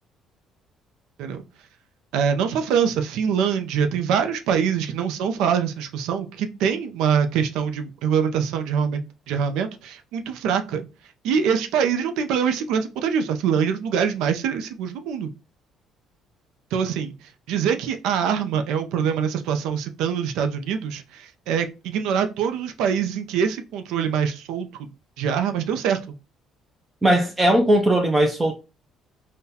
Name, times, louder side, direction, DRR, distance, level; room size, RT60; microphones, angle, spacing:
voice 1, 2.1-10.9 11.2-15.3 16.7-24.7 25.2-26.0, right 7 dB, 90° right, 0.4 m, -24 dB
voice 2, 27.0-28.5, right 1 dB, 15° right, 0.4 m, -18 dB
3.8 x 2.1 x 2.7 m
cardioid pair, 170°, 0 cm